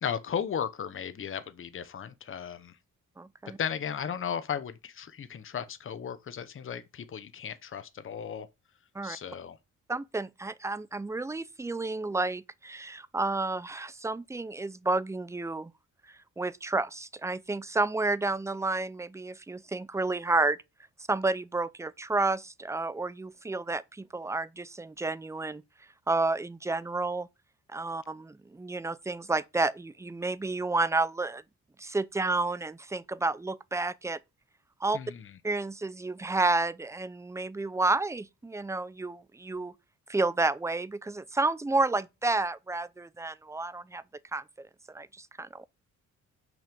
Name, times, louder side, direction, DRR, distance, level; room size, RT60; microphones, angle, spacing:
voice 1, 0.0-2.8 3.6-8.5 9.0-9.6 34.9-35.3, left 8 dB, 40° left, 0.9 m, -35 dB
voice 2, 3.2-3.6 8.9-9.2 9.9-15.7 16.4-20.6 21.1-25.6 26.1-27.3 27.7-31.4 31.8-34.2 34.8-35.0 35.4-39.7 40.1-44.0 44.3-45.7, right 3 dB, 10° right, 0.5 m, -30 dB
6.1 x 5.5 x 6.8 m
cardioid pair, 105°, 32 cm